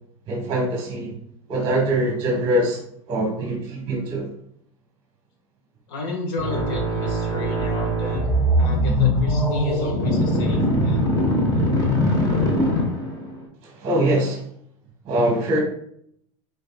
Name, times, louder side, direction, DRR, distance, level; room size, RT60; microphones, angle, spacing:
voice 1, 0.3-1.1 1.5-2.8 3.1-4.3 13.6-14.4 15.0-15.6, right 1 dB, 30° right, -1 dB, 1.2 m, -23 dB
voice 2, 5.9-11.7, left 2 dB, 65° left, 1 dB, 1.8 m, -33 dB
sound 1, 6.4-13.3, equal, 20° left, 1.3 m, -21 dB
5.1 x 4.0 x 2.4 m, 0.69 s
supercardioid pair, 125°, 17 cm